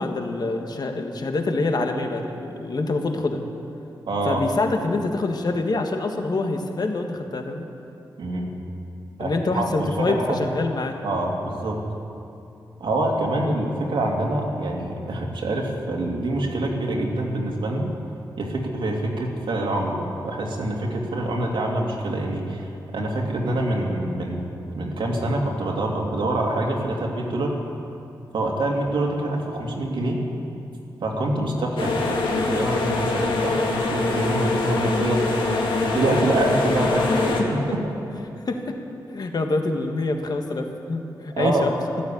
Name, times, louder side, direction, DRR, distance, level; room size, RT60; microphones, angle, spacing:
voice 1, 0.0-3.4 4.2-7.6 9.2-11.0 38.5-38.8 39.1-41.7, left 2 dB, 55° left, 4 dB, 1.6 m, -26 dB
voice 2, 4.1-4.4 8.2-8.5 9.2-10.5 11.0-11.8 12.8-17.9 18.4-22.7 22.9-24.4 24.7-27.5 28.3-30.2 31.0-35.3 35.8-37.4 37.7-37.8 41.4-41.7, right 1 dB, 80° right, 0 dB, 2.5 m, -25 dB
sound 1, 31.8-37.4, left 3 dB, 90° left, 2.2 m, -23 dB
13.5 x 12.0 x 8.7 m, 2.7 s
cardioid pair, 60°, 8 cm